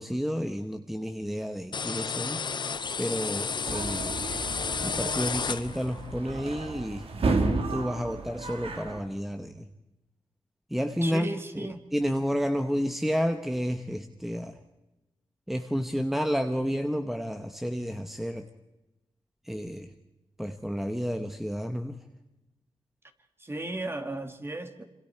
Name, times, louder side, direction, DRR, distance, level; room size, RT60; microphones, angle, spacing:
voice 1, 0.0-2.4 3.0-4.2 4.8-7.4 7.7-9.7 10.7-11.3 11.5-14.6 15.5-18.5 19.4-19.9 20.4-22.0, equal, ahead, 7 dB, 1.2 m, -31 dB
sound 1, 1.7-6.1, left 5 dB, 45° left, 0.7 m, -32 dB
sound 2, 3.7-9.0, right 3 dB, 65° right, 2.7 m, -32 dB
voice 2, 11.0-11.8 23.4-24.8, right 2 dB, 20° right, 7 dB, 2.4 m, -35 dB
27.0 x 26.5 x 4.6 m, 1.0 s
wide cardioid pair, 95°, 11 cm